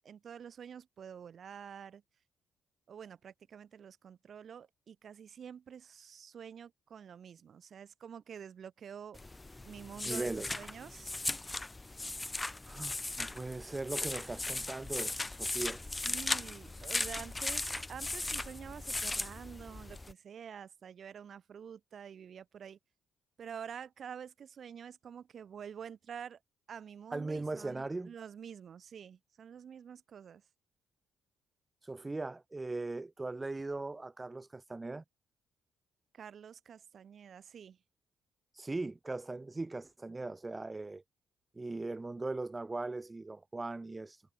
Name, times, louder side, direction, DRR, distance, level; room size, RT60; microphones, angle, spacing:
voice 1, 0.0-2.0 2.9-9.2 9.6-11.1 16.0-22.8 23.4-26.4 26.7-30.4 36.1-37.8, right 8 dB, 55° right, 1.6 m, -48 dB
sound 1, 9.1-20.1, left 2 dB, 15° left, 2.0 m, -38 dB
voice 2, 10.0-10.5 12.7-15.8 27.1-28.1 31.8-35.0 38.5-41.0 41.5-44.2, right 2 dB, 20° right, 1.2 m, -39 dB
cardioid pair, 90°, 0 cm